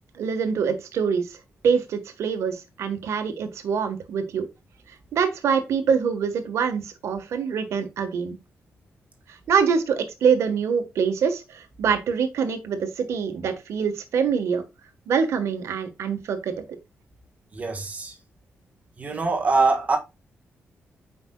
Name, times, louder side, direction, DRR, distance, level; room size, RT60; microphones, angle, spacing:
voice 1, 0.1-1.4 1.6-4.5 5.1-8.4 9.3-14.6 15.1-16.6, right 6 dB, 80° right, 1.4 m, -25 dB
voice 2, 17.5-18.1 19.0-20.0, right 3 dB, 30° right, 1.5 m, -23 dB
8.5 x 5.2 x 2.3 m
wide cardioid pair, 165°, 5 cm